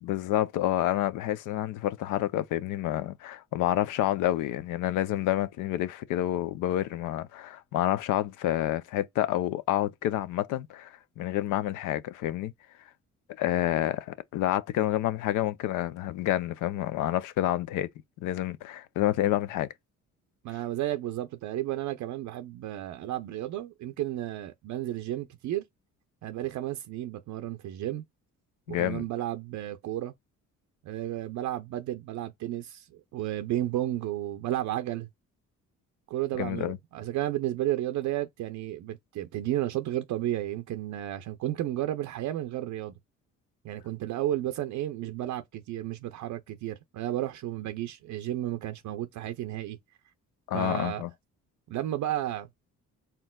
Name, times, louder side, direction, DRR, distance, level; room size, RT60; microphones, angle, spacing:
voice 1, 0.0-12.5 13.4-17.9 18.2-19.7 28.7-29.0 36.4-36.8 50.5-51.1, left 13 dB, 85° left, 0.5 m, -28 dB
voice 2, 20.4-25.6 26.2-28.0 28.7-30.1 30.8-35.1 36.1-42.9 43.6-49.8 50.5-51.0 51.7-52.5, right 13 dB, 70° right, 0.5 m, -32 dB
4.3 x 3.8 x 2.2 m
cardioid pair, 90°, 30 cm